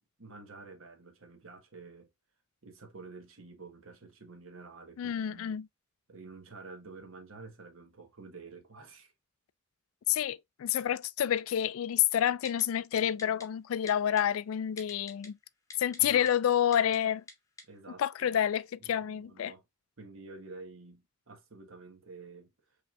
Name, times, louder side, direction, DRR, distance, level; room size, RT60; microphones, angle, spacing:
voice 1, 0.2-2.1 2.6-5.6 6.1-9.1 16.0-16.3 17.7-18.4 18.8-19.6 20.0-22.8, right 3 dB, 80° right, 1.2 m, -49 dB
voice 2, 5.0-5.7 10.1-15.4 15.8-17.2 18.0-19.5, left 10 dB, 85° left, 0.3 m, -29 dB
Typing, 12.5-12.6 13.0-13.5 13.9-14.2 14.8-15.3 15.7-16.3 16.7-17.0 17.3-17.4 17.6-17.7, left 3 dB, 15° left, 0.8 m, -46 dB
5.1 x 3.2 x 2.4 m
head